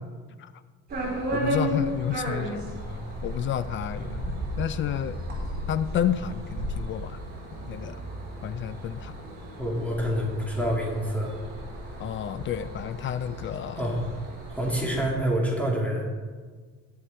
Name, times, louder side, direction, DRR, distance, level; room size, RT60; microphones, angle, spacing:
sound 1, 0.9-15.1, right 1 dB, 30° right, 3.3 m, -34 dB
voice 1, 1.3-5.2 5.7-7.2 7.7-8.0 8.4-9.1 12.0-13.8, left 10 dB, 40° left, 14 dB, 0.5 m, -31 dB
voice 2, 9.6-11.3 13.8-14.0 14.5-16.0, equal, 5° left, -2 dB, 2.7 m, -27 dB
19.0 x 6.6 x 4.4 m, 1.5 s
cardioid pair, 155°, 29 cm